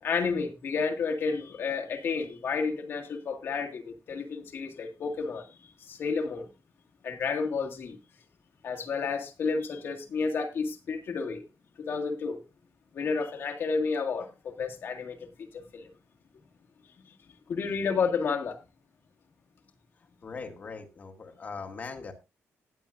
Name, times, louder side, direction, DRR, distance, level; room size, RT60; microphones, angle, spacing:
voice 1, 0.0-5.5 5.9-6.5 7.0-8.0 8.6-11.4 11.8-12.4 12.9-15.3 15.5-15.9 17.5-18.6, left 5 dB, 50° left, 2 dB, 1.9 m, -31 dB
voice 2, 20.0-22.1, left 4 dB, 30° left, 3 dB, 1.9 m, -41 dB
19.5 x 7.7 x 2.5 m, 0.26 s
cardioid pair, 175°, 5 cm